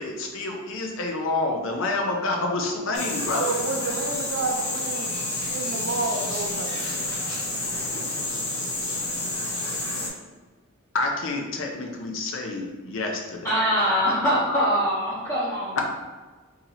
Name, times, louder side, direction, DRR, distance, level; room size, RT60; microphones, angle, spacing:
voice 1, 0.0-3.5 10.9-13.5 15.8-15.9, left 2 dB, 65° left, 1 dB, 0.6 m, -28 dB
sound 1, 2.9-10.1, left 2 dB, 90° left, 1.0 m, -29 dB
voice 2, 3.3-5.2 5.5-7.2, right 3 dB, 55° right, 3 dB, 0.4 m, -30 dB
voice 3, 13.4-15.8, equal, 15° left, -11 dB, 0.7 m, -23 dB
2.8 x 2.8 x 3.9 m, 1.3 s
head